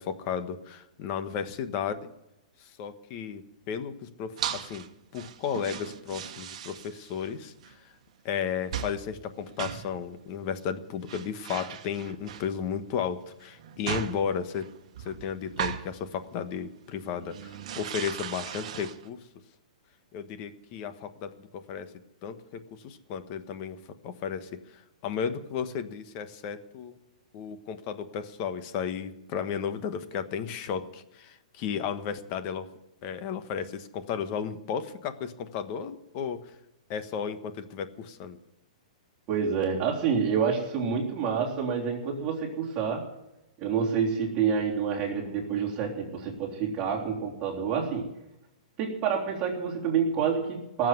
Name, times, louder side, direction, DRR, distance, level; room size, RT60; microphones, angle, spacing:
voice 1, 0.0-2.1 2.6-4.8 5.1-7.9 8.2-14.7 15.0-19.2 20.1-21.9 22.2-23.8 24.0-27.0 27.3-32.7 33.0-36.5 36.9-38.4, left 7 dB, 35° left, 10 dB, 1.3 m, -34 dB
sound 1, 4.4-4.9 5.1-7.3 7.6-7.7 8.7-9.1 9.4-10.0 10.8-10.9 11.1-12.7 13.4-15.9 16.4-16.6 17.0-19.1, right 9 dB, 55° right, 1.3 m, -37 dB
voice 2, 39.3-43.1 43.6-48.1 48.8-50.9, right 6 dB, 25° right, -3 dB, 3.4 m, -28 dB
18.5 x 7.6 x 9.4 m, 0.90 s
hypercardioid pair, 155°, 4 cm